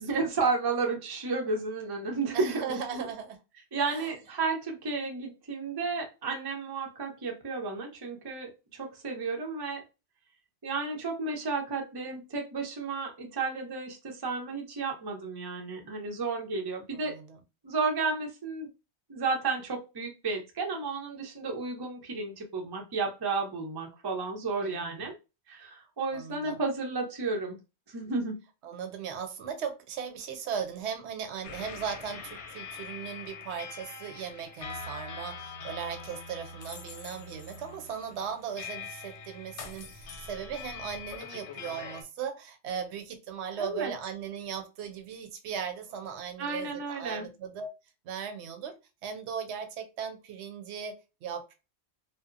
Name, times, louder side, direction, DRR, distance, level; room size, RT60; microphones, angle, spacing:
voice 1, 0.0-3.1 3.7-9.8 10.6-17.2 17.6-18.7 19.1-25.1 25.5-27.6 27.9-28.4 43.6-43.9 46.4-47.3, right 4 dB, 30° right, 0.5 m, -32 dB
voice 2, 2.3-3.4 3.9-4.1 16.9-17.4 24.6-25.0 26.1-26.6 28.6-47.7 48.0-48.8 49.0-51.5, right 7 dB, 75° right, 0.9 m, -38 dB
sound 1, 31.4-42.0, left 5 dB, 85° left, 0.9 m, -43 dB
2.8 x 2.1 x 2.5 m
omnidirectional pair, 1.2 m